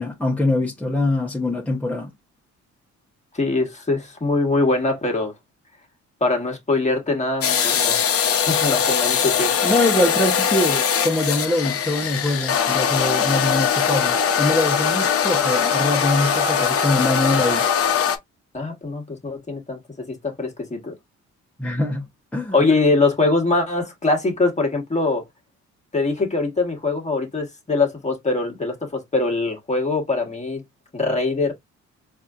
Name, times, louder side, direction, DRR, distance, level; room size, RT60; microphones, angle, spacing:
voice 1, 0.0-2.1 9.6-17.7 21.6-22.6, left 2 dB, 5° left, 1.0 m, -23 dB
voice 2, 3.3-5.3 6.2-8.0 8.5-9.5 18.5-20.9 22.5-25.2 25.9-30.6 30.9-31.5, left 3 dB, 25° left, 1.5 m, -22 dB
sound 1, 7.4-18.2, left 7 dB, 50° left, 0.7 m, -21 dB
4.1 x 2.7 x 2.5 m
cardioid pair, 90°, 30 cm